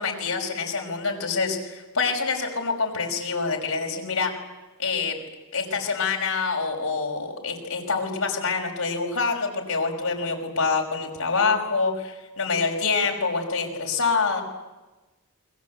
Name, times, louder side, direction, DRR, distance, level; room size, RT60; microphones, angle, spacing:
voice 1, 0.0-4.3 4.8-5.2 5.5-14.4, left 4 dB, 75° left, 2 dB, 5.7 m, -26 dB
29.0 x 23.0 x 8.4 m, 1.1 s
head